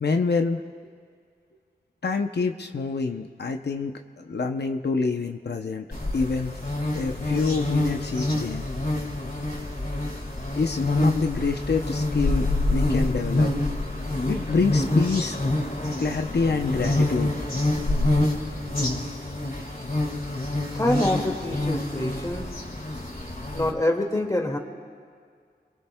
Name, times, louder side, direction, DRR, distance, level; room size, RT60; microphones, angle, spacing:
voice 1, 0.0-0.6 2.0-5.9 6.1-6.6 6.9-8.6 10.6-13.5 14.3-15.4 16.0-17.4, left 4 dB, 85° left, 4 dB, 0.7 m, -26 dB
sound 1, 5.9-23.7, left 1 dB, 60° left, 2.6 m, -26 dB
voice 2, 20.7-22.5 23.5-24.6, left 1 dB, 20° left, 2 dB, 2.1 m, -25 dB
28.0 x 22.5 x 2.3 m, 2.1 s
wide cardioid pair, 50°, 17 cm